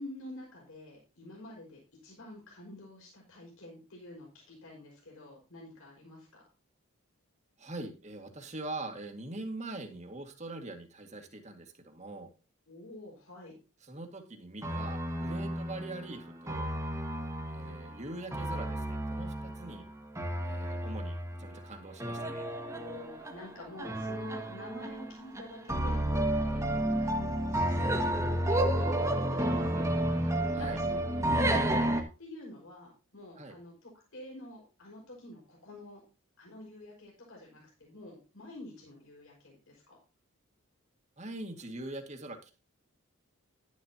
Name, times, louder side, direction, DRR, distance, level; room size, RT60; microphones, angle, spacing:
voice 1, 0.0-6.5 12.7-13.5 17.6-17.8 22.6-26.6 27.0-36.0 36.4-40.0, left 1 dB, 65° left, -2 dB, 5.3 m, -48 dB
voice 2, 7.6-12.3 13.8-16.7 17.5-19.9 20.4-22.5 30.5-30.8 33.4-33.6 41.2-42.5, right 2 dB, 30° right, 5 dB, 1.9 m, -43 dB
Evil Witch Piano Intro, 14.6-32.0, right 1 dB, 15° right, 1.7 m, -31 dB
12.0 x 11.0 x 2.9 m, 0.32 s
head